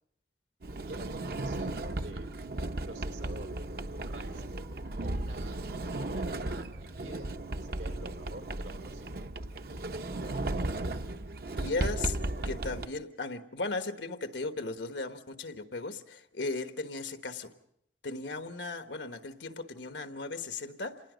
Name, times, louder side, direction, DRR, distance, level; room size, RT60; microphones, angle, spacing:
Sliding door, 0.6-12.9, right 2 dB, 60° right, 0.8 m, -35 dB
voice 1, 0.9-2.3 2.8-3.5 4.0-4.5 5.0-5.6 5.9-9.3, right 2 dB, 90° right, 3.2 m, -47 dB
voice 2, 11.5-12.2 12.4-17.5 18.0-21.0, left 3 dB, 90° left, 1.3 m, -36 dB
26.5 x 19.5 x 5.1 m
head